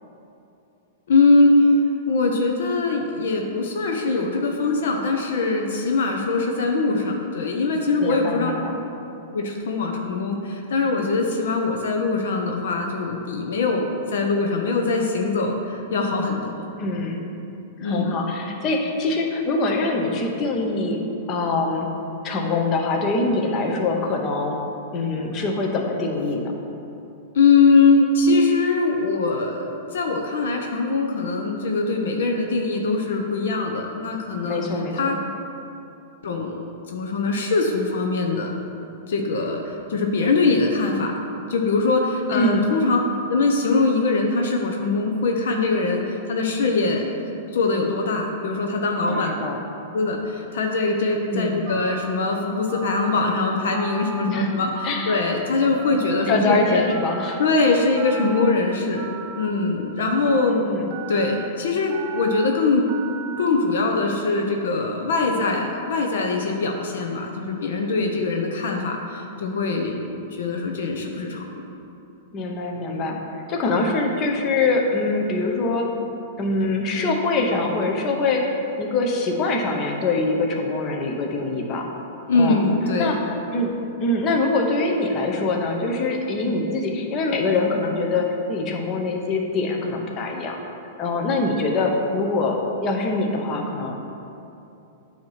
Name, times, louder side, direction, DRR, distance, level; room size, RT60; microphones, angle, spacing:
voice 1, 1.1-1.7 2.1-8.5 9.3-16.5 17.8-18.1 27.3-34.6 34.9-35.2 36.2-38.5 39.1-41.1 41.5-43.0 43.3-47.1 47.5-49.3 49.9-56.9 57.4-59.1 59.3-60.6 61.1-62.8 63.4-71.5 82.3-83.1, left 3 dB, 75° left, 2 dB, 0.7 m, -22 dB
voice 2, 8.0-8.7 16.8-17.2 17.8-21.0 21.3-21.9 22.2-24.5 24.9-26.5 34.4-35.1 42.3-42.7 49.1-49.6 51.3-51.6 54.3-54.6 54.8-55.3 56.3-57.4 60.5-60.9 72.3-73.2 73.5-75.9 76.4-78.5 78.8-81.9 82.3-82.6 83.0-83.7 84.0-90.6 91.0-94.1, left 3 dB, 35° left, 1 dB, 0.9 m, -24 dB
Telephone, 51.7-52.1 52.7-53.2 53.7-54.3 54.8-55.3 55.8-56.4 56.9-57.5 58.0-58.5 59.0-59.5 60.0-60.5 60.9-61.5 61.9-62.5 62.9-63.5, right 7 dB, 45° right, 0.6 m, -37 dB
8.6 x 2.9 x 5.7 m, 2.8 s
hypercardioid pair, 120°, 0 cm